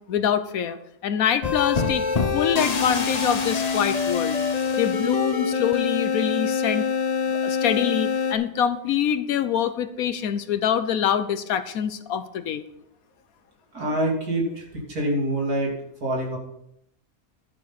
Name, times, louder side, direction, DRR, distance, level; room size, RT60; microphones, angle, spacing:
voice 1, 0.1-2.0 2.3-4.4 4.8-6.9 7.4-12.6, left 9 dB, 75° left, 12 dB, 1.2 m, -25 dB
sound 1, 1.4-8.3, left 5 dB, 35° left, 0.8 m, -25 dB
voice 2, 13.7-15.7 16.0-16.4, right 1 dB, 80° right, -2 dB, 3.6 m, -25 dB
11.5 x 11.5 x 4.1 m, 0.75 s
omnidirectional pair, 1.5 m